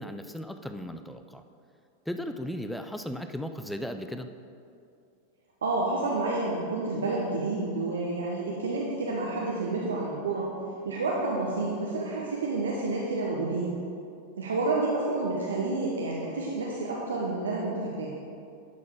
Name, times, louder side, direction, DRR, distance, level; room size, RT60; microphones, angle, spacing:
voice 1, 0.0-1.4 2.1-4.3, equal, ahead, 7 dB, 0.5 m, -36 dB
voice 2, 5.6-10.5 10.8-13.7 14.4-18.1, right 3 dB, 70° right, -3 dB, 1.0 m, -29 dB
11.5 x 6.3 x 3.7 m, 2.5 s
figure-of-eight pair, 90°, 0 cm